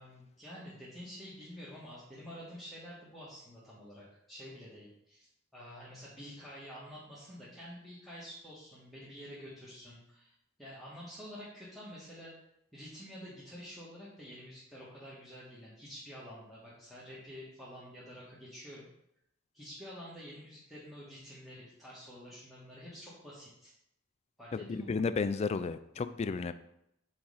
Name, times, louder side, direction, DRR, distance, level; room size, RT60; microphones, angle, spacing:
voice 1, 0.0-5.3 5.5-10.3 10.6-12.3 12.7-18.9 19.5-23.7 24.4-25.1, equal, ahead, -9 dB, 1.3 m, -48 dB
voice 2, 24.5-26.5, left 4 dB, 30° left, 12 dB, 0.3 m, -33 dB
6.1 x 4.2 x 4.9 m, 0.79 s
head